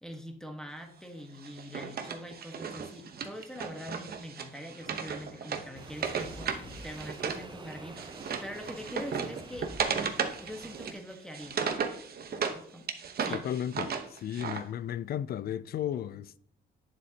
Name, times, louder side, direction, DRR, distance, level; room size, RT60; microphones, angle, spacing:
voice 1, 0.0-9.7 10.4-11.6 11.9-12.0 12.5-12.9 13.2-13.5, equal, 5° left, 1.3 m, -44 dB
Wood, 1.4-7.5 7.7-12.6 12.9-14.6, right 6 dB, 50° right, 1.0 m, -35 dB
sound 1, 4.7-9.9, left 2 dB, 85° left, 2.0 m, -53 dB
sound 2, 5.7-10.9, right 4 dB, 25° right, 0.6 m, -48 dB
voice 2, 13.3-16.4, left 10 dB, 50° left, 0.4 m, -34 dB
9.3 x 7.5 x 2.8 m
cardioid pair, 90°, 20 cm